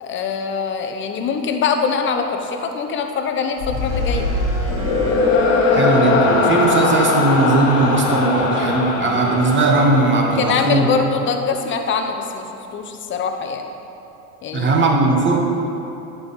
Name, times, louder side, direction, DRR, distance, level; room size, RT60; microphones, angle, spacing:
voice 1, 0.0-4.3 10.4-13.7 14.4-14.7, left 5 dB, 25° left, 5 dB, 0.7 m, -23 dB
sound 1, 3.6-11.0, left 3 dB, 60° left, 1.1 m, -20 dB
Wind instrument woodwind instrument, 3.9-11.0, right 2 dB, 65° right, 1.4 m, -33 dB
voice 2, 5.7-11.0 14.5-15.4, right 2 dB, 25° right, 1 dB, 1.1 m, -18 dB
9.4 x 4.7 x 4.0 m, 2.9 s
hypercardioid pair, 95°, 46 cm